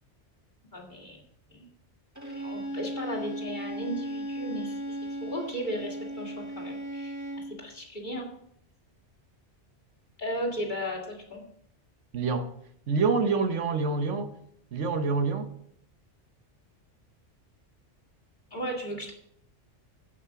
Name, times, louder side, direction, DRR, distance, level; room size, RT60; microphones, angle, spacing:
voice 1, 0.7-1.2 1.5-1.6 2.4-7.2 7.6-8.3 10.2-11.4 18.5-19.1, equal, 40° left, 2.5 m, -35 dB
Bowed string instrument, 2.2-7.6, equal, 15° right, 1.8 m, -36 dB
voice 2, 12.1-12.5 12.9-14.3 14.7-15.5, right 4 dB, 80° right, 1.3 m, -26 dB
15.0 x 5.8 x 4.7 m
omnidirectional pair, 1.2 m